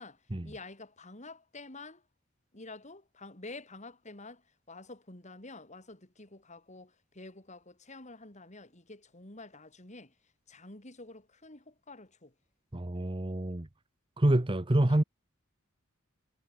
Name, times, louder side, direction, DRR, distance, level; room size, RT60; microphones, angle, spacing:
voice 1, 0.0-2.0 2.5-10.1 10.5-12.3 14.8-15.0, left 2 dB, 35° left, 3.8 m, -49 dB
voice 2, 12.7-13.7 14.2-15.0, right 1 dB, 25° right, 0.9 m, -27 dB
head